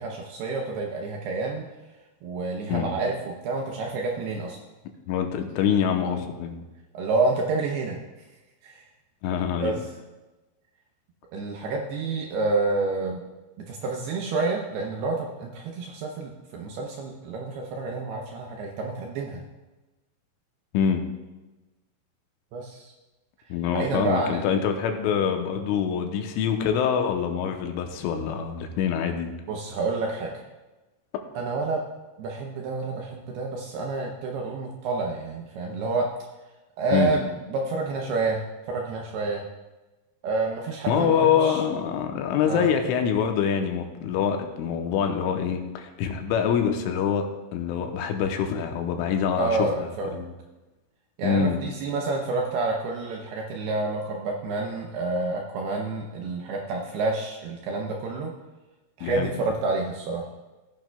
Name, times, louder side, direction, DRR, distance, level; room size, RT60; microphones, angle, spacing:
voice 1, 0.0-1.7 2.2-4.6 6.9-8.0 8.6-8.8 9.6-9.8 11.3-13.2 13.7-19.4 22.5-22.9 23.7-24.5 29.5-30.3 31.4-31.8 32.2-36.1 36.8-39.4 40.2-41.6 42.4-42.7 49.3-50.2 51.2-58.3 59.0-60.2, right 3 dB, 80° right, 0 dB, 2.3 m, -29 dB
voice 2, 5.1-6.6 9.2-9.7 20.7-21.0 23.5-29.3 36.9-37.1 40.9-47.3 47.5-49.7 50.1-50.3 51.2-51.6 59.0-59.3, left 7 dB, 85° left, 5 dB, 3.3 m, -25 dB
15.5 x 9.1 x 2.3 m, 1.1 s
omnidirectional pair, 5.6 m